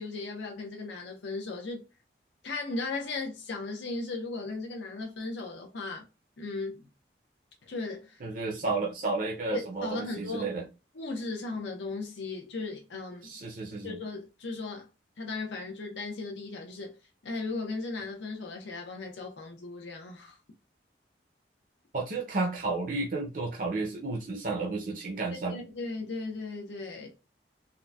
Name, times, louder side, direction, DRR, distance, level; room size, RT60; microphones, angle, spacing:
voice 1, 0.0-1.8 2.4-6.0 6.4-6.9 7.7-8.2 9.5-10.5 10.9-13.3 13.8-14.9 15.2-17.0 17.2-20.4 25.3-27.2, left 3 dB, 80° left, 0.7 m, -36 dB
voice 2, 8.2-10.7 13.2-14.0 21.9-25.6, right 3 dB, 45° right, 0.5 m, -32 dB
3.8 x 2.1 x 2.2 m
head